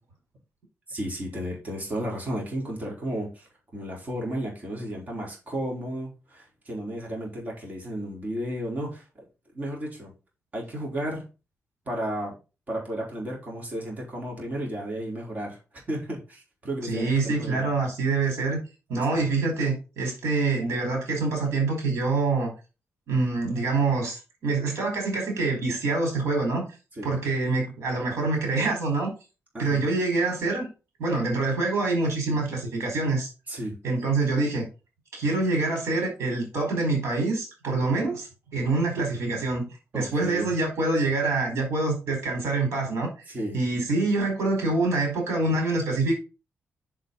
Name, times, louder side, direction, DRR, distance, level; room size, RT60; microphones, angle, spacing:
voice 1, 0.9-3.5 3.7-9.0 9.5-10.1 10.5-11.2 11.9-12.4 12.7-15.6 15.9-17.7 19.2-19.3 26.9-27.2 29.5-29.8 33.5-33.7 39.9-40.5 43.3-43.6, right 1 dB, 35° right, 4.2 m, -33 dB
voice 2, 16.8-18.6 18.9-22.5 23.1-26.7 27.0-29.1 29.6-30.7 31.0-33.3 33.8-34.6 35.1-39.7 39.9-43.1 43.5-46.1, right 3 dB, 85° right, 4.7 m, -25 dB
7.4 x 6.8 x 4.1 m
cardioid pair, 105°, 5 cm